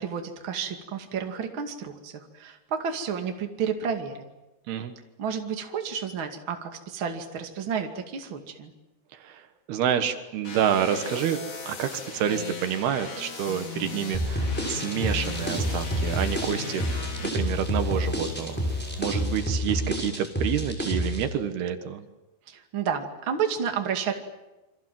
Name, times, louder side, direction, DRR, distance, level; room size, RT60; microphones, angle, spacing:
voice 1, 0.0-4.2 5.2-8.7 22.5-24.2, right 7 dB, 35° right, 4 dB, 2.5 m, -31 dB
voice 2, 9.1-9.4 9.7-11.4 11.7-18.6 19.0-22.0, right 9 dB, 80° right, 8 dB, 3.4 m, -28 dB
sound 1, 10.4-17.3, left 4 dB, 40° left, 1.2 m, -38 dB
sound 2, 13.5-19.4, left 4 dB, 75° left, 8.9 m, -40 dB
sound 3, 14.1-21.2, equal, ahead, 6.0 m, -28 dB
28.0 x 25.0 x 7.7 m, 1.0 s
omnidirectional pair, 4.6 m